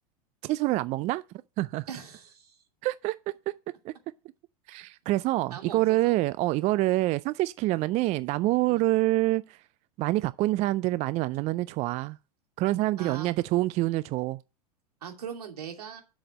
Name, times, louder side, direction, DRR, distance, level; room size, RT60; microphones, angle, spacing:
voice 1, 0.4-1.2 1.6-1.9 2.8-3.2 3.8-3.9 4.7-9.6 10.0-12.2 12.6-14.4, right 18 dB, 35° right, 0.4 m, -26 dB
voice 2, 1.9-2.6 5.5-6.2 6.9-7.0 8.7-8.8 13.0-13.3 15.0-16.0, right 7 dB, 85° right, 2.5 m, -40 dB
7.7 x 6.2 x 6.2 m
hypercardioid pair, 100°, 19 cm